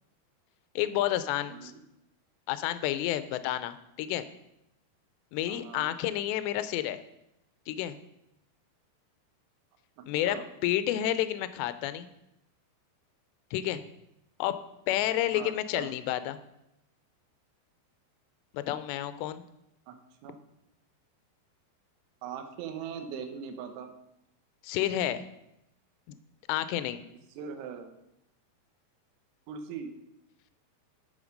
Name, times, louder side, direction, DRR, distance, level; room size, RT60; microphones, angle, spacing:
voice 1, 0.8-1.7 2.5-4.3 5.3-7.0 7.7-8.0 10.1-10.4 10.6-12.1 13.5-13.8 14.4-14.6 14.9-16.4 18.5-19.4 24.6-25.2 26.1-26.2 26.5-27.0, left 13 dB, 85° left, 12 dB, 2.8 m, -30 dB
voice 2, 1.5-1.8 5.5-5.9 10.0-10.5 15.3-15.9 19.9-20.0 20.2-20.4 22.2-23.9 27.4-27.9 29.5-29.9, right 7 dB, 80° right, 6 dB, 3.0 m, -40 dB
11.0 x 6.6 x 5.2 m, 0.84 s
omnidirectional pair, 4.9 m